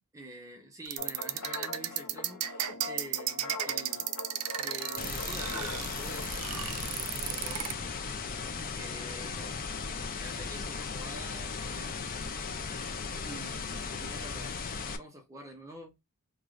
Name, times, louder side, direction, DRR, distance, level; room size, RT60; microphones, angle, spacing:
voice 1, 0.1-4.2 4.6-6.5 7.1-7.7 8.7-9.6 10.2-12.4 13.2-16.0, right 1 dB, 15° right, 0.6 m, -47 dB
sound 1, 0.9-7.7, right 12 dB, 75° right, 0.4 m, -34 dB
sound 2, 1.0-6.5, left 3 dB, 70° left, 0.8 m, -43 dB
sound 3, 5.0-15.0, left 5 dB, 40° left, 0.4 m, -37 dB
2.5 x 2.4 x 3.0 m
head